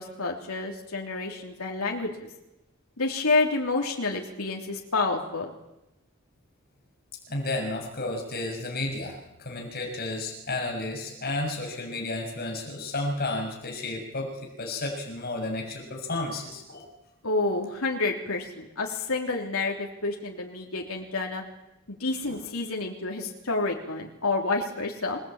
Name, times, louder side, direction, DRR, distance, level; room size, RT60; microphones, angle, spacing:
voice 1, 0.0-2.3 3.0-5.5 17.2-21.4 21.9-25.2, left 3 dB, 90° left, 0 dB, 3.3 m, -29 dB
voice 2, 7.3-14.3 14.6-16.9 22.2-22.4, left 2 dB, 45° left, 2 dB, 6.7 m, -32 dB
27.0 x 18.5 x 8.9 m, 0.92 s
head